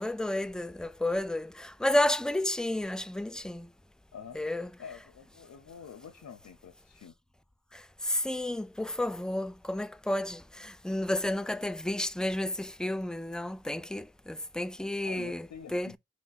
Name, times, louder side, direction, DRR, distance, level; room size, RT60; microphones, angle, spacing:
voice 1, 0.0-3.7 4.3-4.7 8.1-16.0, left 1 dB, 5° left, 0.3 m, -31 dB
voice 2, 4.8-7.1 15.0-15.9, left 7 dB, 80° left, 0.6 m, -47 dB
4.8 x 2.1 x 4.0 m
wide cardioid pair, 45°, 29 cm